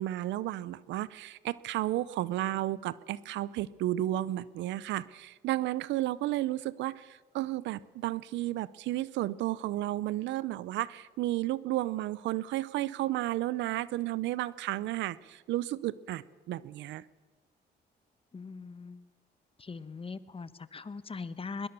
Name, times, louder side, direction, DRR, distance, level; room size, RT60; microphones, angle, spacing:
voice 1, 0.0-17.0, right 15 dB, 80° right, 20 dB, 0.6 m, -33 dB
voice 2, 18.3-19.1 19.6-21.7, left 4 dB, 30° left, 15 dB, 1.2 m, -41 dB
21.5 x 19.5 x 6.8 m, 1.3 s
supercardioid pair, 70°, 18 cm